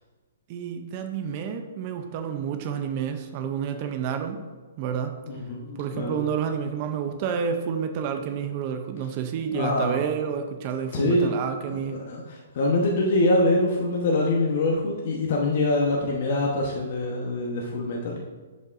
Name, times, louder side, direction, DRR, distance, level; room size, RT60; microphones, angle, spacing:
voice 1, 0.5-4.4 4.8-5.2 5.8-12.0, right 7 dB, 25° right, 7 dB, 0.4 m, -29 dB
voice 2, 5.3-6.2 9.5-10.0 10.9-11.4 11.7-18.2, left 2 dB, 40° left, -2 dB, 0.9 m, -24 dB
10.5 x 5.4 x 2.5 m, 1.4 s
hypercardioid pair, 175°, 0 cm